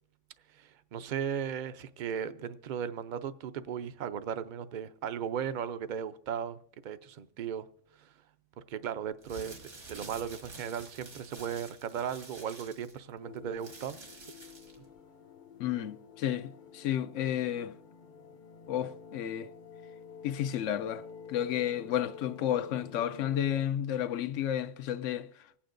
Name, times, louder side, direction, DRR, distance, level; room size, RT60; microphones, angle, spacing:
voice 1, 0.5-6.6 6.8-7.7 8.0-8.1 8.7-9.6 9.9-14.0, right 8 dB, 55° right, 0.6 m, -36 dB
sound 1, 9.2-14.8, right 3 dB, 75° right, 2.0 m, -49 dB
sound 2, 13.2-23.7, left 6 dB, 55° left, 0.6 m, -50 dB
voice 2, 15.6-17.7 18.7-19.5 20.2-25.3, left 10 dB, 85° left, 0.9 m, -32 dB
25.5 x 8.6 x 2.5 m
omnidirectional pair, 1.2 m